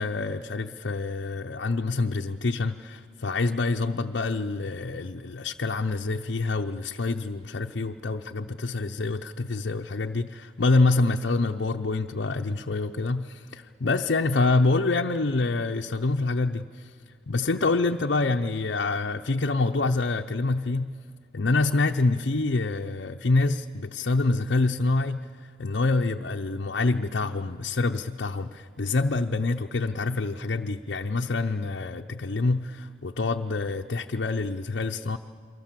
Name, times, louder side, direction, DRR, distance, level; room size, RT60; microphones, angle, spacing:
voice 1, 0.0-16.9 17.3-20.9 21.3-25.3 25.6-35.2, left 3 dB, 60° left, 3 dB, 0.7 m, -26 dB
29.5 x 23.5 x 7.5 m, 2.1 s
head